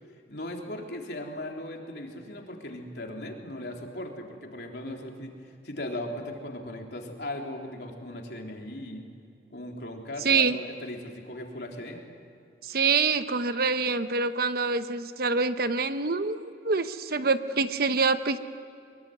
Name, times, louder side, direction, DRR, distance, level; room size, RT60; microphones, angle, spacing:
voice 1, 0.3-9.0 9.5-12.1, left 1 dB, 65° left, 1 dB, 3.7 m, -38 dB
voice 2, 10.2-10.6 12.6-18.4, right 4 dB, 55° right, 10 dB, 1.0 m, -26 dB
23.5 x 22.5 x 9.4 m, 2.6 s
head